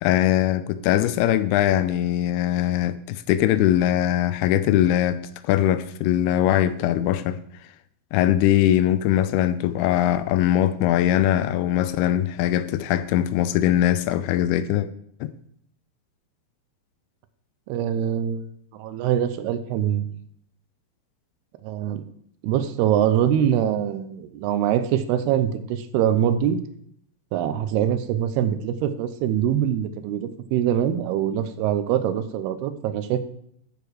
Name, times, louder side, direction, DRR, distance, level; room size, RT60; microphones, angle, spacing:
voice 1, 0.0-7.4 8.1-14.9 15.2-15.3, left 12 dB, 85° left, 2.5 m, -21 dB
voice 2, 17.7-18.5 18.7-20.2 21.6-22.0 22.4-26.6 27.3-33.2, right 10 dB, 85° right, 2.8 m, -23 dB
13.0 x 6.9 x 4.8 m
omnidirectional pair, 4.5 m